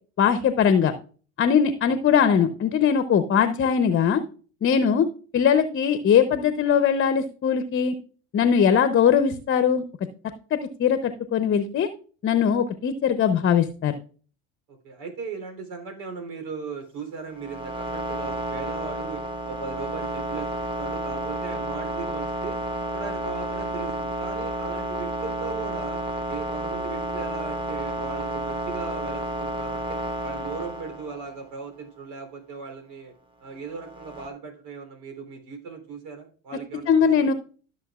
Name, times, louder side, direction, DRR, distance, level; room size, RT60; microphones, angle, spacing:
voice 1, 0.2-0.9 1.4-4.2 4.6-5.1 5.3-8.0 8.3-9.8 10.5-11.9 12.2-14.0 36.9-37.3, left 7 dB, 35° left, 10 dB, 0.8 m, -21 dB
voice 2, 14.7-20.5 20.8-22.6 22.9-26.0 26.3-33.1 33.4-37.3, right 5 dB, 70° right, 5 dB, 3.4 m, -38 dB
sound 1, 17.3-31.4 33.7-34.3, right 1 dB, 15° right, 1.6 m, -31 dB
13.5 x 6.6 x 2.4 m, 0.40 s
hypercardioid pair, 75°, 37 cm